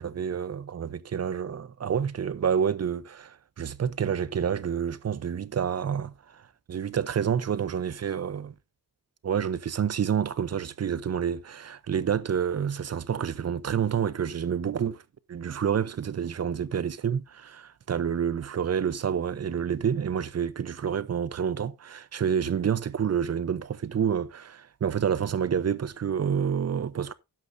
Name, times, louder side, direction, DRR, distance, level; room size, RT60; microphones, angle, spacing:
voice 1, 0.0-8.5 9.2-15.0 15.3-27.1, right 8 dB, 45° right, 0.7 m, -28 dB
12.5 x 10.5 x 2.6 m
wide cardioid pair, 165°, 34 cm